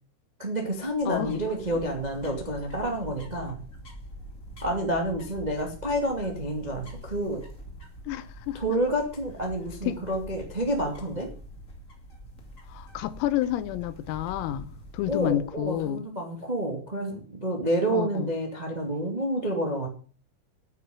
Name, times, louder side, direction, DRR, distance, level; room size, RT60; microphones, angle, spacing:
voice 1, 0.4-3.6 4.6-7.4 8.5-11.3 15.0-19.9, right 1 dB, 60° right, 0.4 m, -29 dB
sound 1, 0.8-16.0, equal, 35° left, 1.2 m, -45 dB
voice 2, 1.1-1.4 8.1-8.6 9.8-10.0 12.7-16.1 17.9-18.3, left 13 dB, 90° left, 3.7 m, -30 dB
9.6 x 9.3 x 7.7 m
omnidirectional pair, 5.9 m